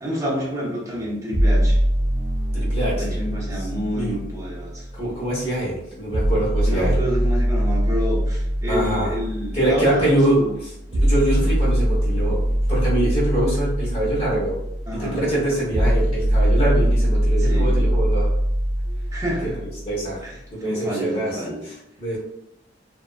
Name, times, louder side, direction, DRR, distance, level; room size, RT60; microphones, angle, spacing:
voice 1, 0.0-1.8 2.8-4.9 6.7-10.5 14.9-15.3 17.4-17.7 18.9-19.7 20.2-21.6, equal, 15° right, -6 dB, 0.8 m, -29 dB
sound 1, 1.3-5.3 6.1-20.2, equal, 35° right, 0.4 m, -22 dB
voice 2, 2.5-3.2 3.5-3.7 3.9-4.1 4.9-7.0 8.7-9.1 9.5-12.4 12.7-14.6 14.9-18.3 19.4-19.5 19.9-20.2 20.5-22.2, right 1 dB, 30° left, -7 dB, 1.1 m, -24 dB
2.6 x 2.1 x 2.3 m, 0.81 s
head